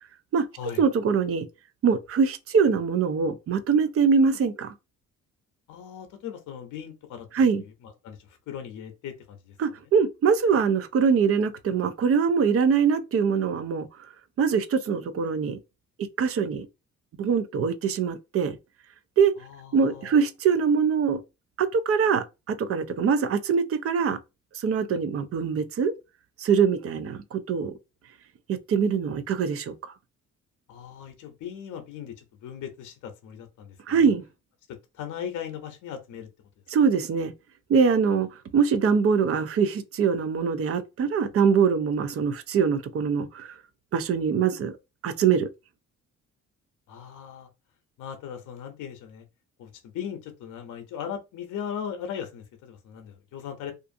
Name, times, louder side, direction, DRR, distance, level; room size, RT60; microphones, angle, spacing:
voice 1, 0.8-1.5 1.8-4.7 7.3-7.6 9.6-13.9 14.4-15.6 16.2-16.7 17.2-18.6 19.2-19.3 19.7-21.2 21.6-24.2 24.5-25.9 26.4-27.7 28.5-29.9 33.9-34.2 36.7-37.3 37.7-38.3 38.5-43.5 43.9-44.8 45.0-45.5, right 6 dB, 50° right, 0.5 m, -23 dB
voice 2, 5.7-7.3 7.6-9.5 19.4-20.2 30.7-34.1 34.9-36.3 46.9-47.5 48.0-49.2 49.6-53.7, left 8 dB, 80° left, 0.7 m, -38 dB
2.5 x 2.4 x 2.5 m
cardioid pair, 90°, 30 cm